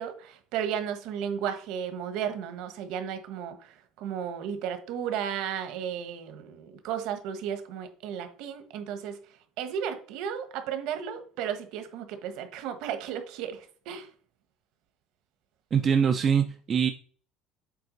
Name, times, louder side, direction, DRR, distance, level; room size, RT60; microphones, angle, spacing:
voice 1, 0.0-9.2 9.6-14.1, right 8 dB, 60° right, 1.2 m, -34 dB
voice 2, 15.7-16.9, right 7 dB, 25° right, 0.4 m, -23 dB
7.9 x 3.5 x 5.2 m
cardioid pair, 175°, 0 cm